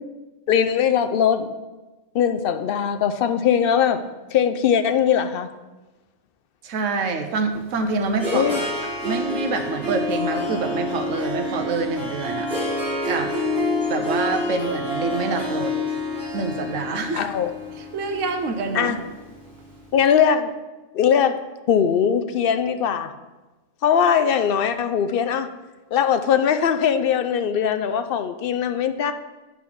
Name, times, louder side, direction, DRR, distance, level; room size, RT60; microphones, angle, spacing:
voice 1, 0.5-1.5 2.1-4.0 4.3-5.5 8.3-8.6 17.2-17.5 18.7-19.0 19.9-20.5 20.9-21.4 21.7-23.1 23.8-25.5 25.9-29.1, left 8 dB, 60° left, 9 dB, 0.6 m, -20 dB
voice 2, 6.6-8.5 9.0-12.5 13.0-13.3 13.9-15.8 16.3-17.3 17.7-19.0, right 3 dB, 90° right, 6 dB, 1.1 m, -26 dB
Harp, 7.5-19.7, left 1 dB, 50° right, 2.3 m, -28 dB
8.5 x 4.0 x 5.8 m, 1.1 s
omnidirectional pair, 1.3 m